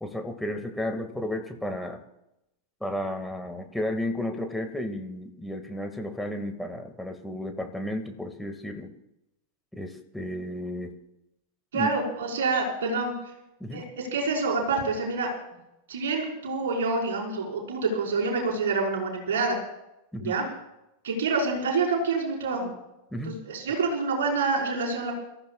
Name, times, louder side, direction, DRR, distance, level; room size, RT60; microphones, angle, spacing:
voice 1, 0.0-2.0 2.8-8.9 9.7-11.0 11.7-11.9 13.6-13.9 20.1-20.4 23.1-23.4, left 1 dB, 5° left, 5 dB, 2.0 m, -33 dB
voice 2, 11.7-13.1 13.7-15.3 15.9-19.6 20.2-20.4 21.0-22.7 23.2-25.1, right 3 dB, 60° right, -1 dB, 4.9 m, -27 dB
28.0 x 15.0 x 2.4 m, 0.88 s
figure-of-eight pair, 90°, 0 cm